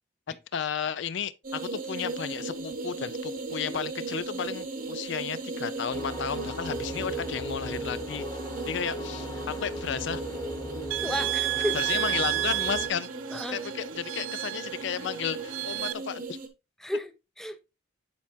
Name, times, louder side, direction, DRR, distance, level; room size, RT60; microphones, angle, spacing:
voice 1, 0.5-8.3 8.6-10.2 11.7-13.1 13.5-16.4, left 7 dB, 60° left, 0.4 m, -33 dB
sound 1, 1.4-16.5, right 3 dB, 45° right, 0.9 m, -37 dB
sound 2, 5.9-12.9, equal, 20° left, 1.2 m, -38 dB
sound 3, 10.9-15.9, right 16 dB, 70° right, 0.3 m, -31 dB
voice 2, 11.0-11.8 13.3-13.6 16.8-17.1 17.4-17.6, equal, ahead, 0.5 m, -32 dB
10.5 x 4.4 x 2.6 m
head